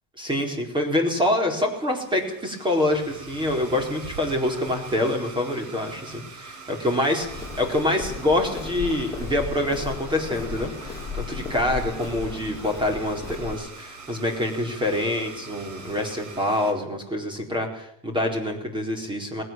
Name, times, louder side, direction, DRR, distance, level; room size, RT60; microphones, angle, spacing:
voice 1, 0.2-19.4, left 1 dB, 10° right, 4 dB, 4.3 m, -26 dB
Domestic sounds home sounds, 1.5-16.7, right 4 dB, 45° right, 4.9 m, -43 dB
Walk footsteps, 7.2-13.5, left 5 dB, 5° left, 5.6 m, -35 dB
19.5 x 17.0 x 8.9 m, 0.66 s
cardioid pair, 160°, 42 cm